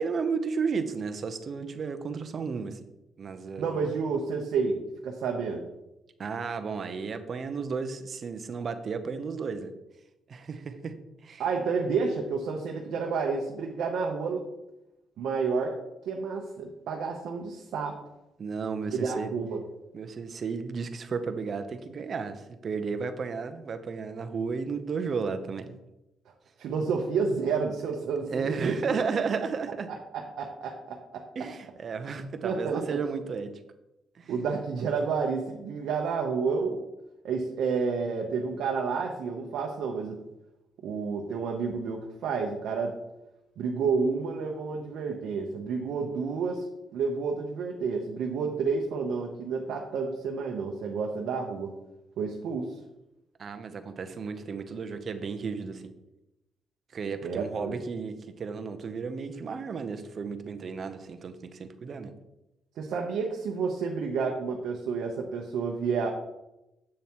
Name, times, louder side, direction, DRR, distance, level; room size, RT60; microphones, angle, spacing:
voice 1, 0.0-2.8 3.2-3.9 6.2-9.7 10.3-10.9 11.2-11.4 18.4-19.3 19.9-25.8 28.3-29.9 31.3-33.5 34.2-34.3 53.4-55.9 56.9-62.1, right 5 dB, 50° right, 9 dB, 0.8 m, -33 dB
voice 2, 3.6-5.7 11.4-14.5 15.2-15.8 16.0-18.0 18.9-19.6 26.6-28.8 30.4-31.2 32.4-33.0 34.3-36.8 37.2-40.2 40.8-42.9 43.6-46.6 46.9-51.8 52.2-52.8 57.2-57.8 62.8-66.1, right 5 dB, 75° right, 1 dB, 0.8 m, -30 dB
7.7 x 7.0 x 3.0 m, 0.93 s
cardioid pair, 95°, 0 cm